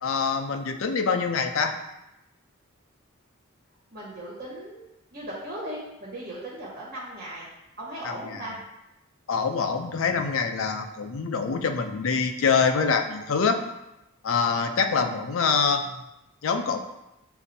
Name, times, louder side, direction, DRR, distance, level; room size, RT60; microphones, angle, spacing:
voice 1, 0.0-1.8 8.0-8.5 9.3-13.6 14.2-16.0 16.4-16.8, left 5 dB, 70° left, 6 dB, 0.5 m, -25 dB
voice 2, 3.9-4.8 5.1-7.5 7.8-8.5, right 1 dB, 45° right, -7 dB, 1.4 m, -37 dB
6.8 x 2.6 x 2.7 m, 0.90 s
head